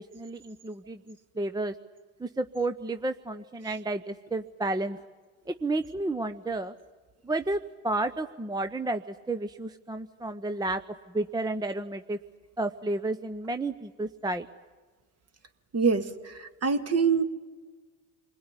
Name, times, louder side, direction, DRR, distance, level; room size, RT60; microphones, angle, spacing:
voice 1, 0.0-1.7 2.2-5.0 5.5-6.7 7.2-10.8 11.1-12.2 12.6-14.5, right 2 dB, 10° right, 9 dB, 0.8 m, -31 dB
voice 2, 15.7-17.2, right 5 dB, 35° right, 8 dB, 2.1 m, -25 dB
28.5 x 21.0 x 9.7 m, 1.4 s
hypercardioid pair, 70°, 44 cm